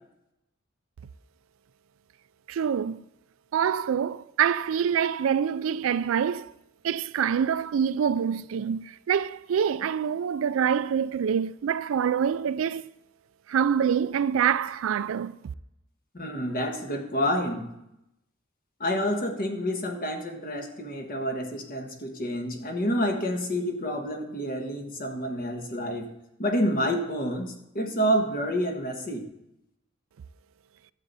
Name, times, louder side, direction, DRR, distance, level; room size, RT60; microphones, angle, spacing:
voice 1, 2.5-3.0 3.5-6.5 6.8-12.8 13.5-15.4, right 8 dB, 75° right, 0.3 m, -26 dB
voice 2, 16.1-17.7 18.8-26.1 26.4-29.2, equal, 45° left, 1.5 m, -28 dB
12.0 x 7.7 x 4.1 m
head